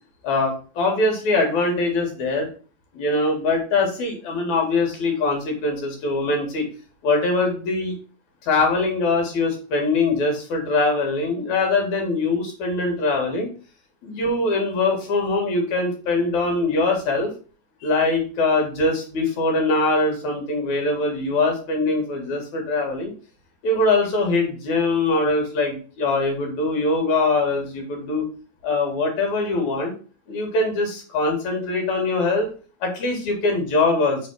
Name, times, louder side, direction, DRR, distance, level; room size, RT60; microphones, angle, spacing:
voice 1, 0.2-2.5 2.9-6.7 7.0-7.9 8.5-13.5 14.0-17.3 17.8-23.1 23.6-28.3 28.6-29.9 30.3-32.5 32.8-34.2, left 3 dB, 60° left, 2 dB, 2.7 m, -22 dB
5.6 x 4.0 x 6.0 m, 0.38 s
omnidirectional pair, 4.1 m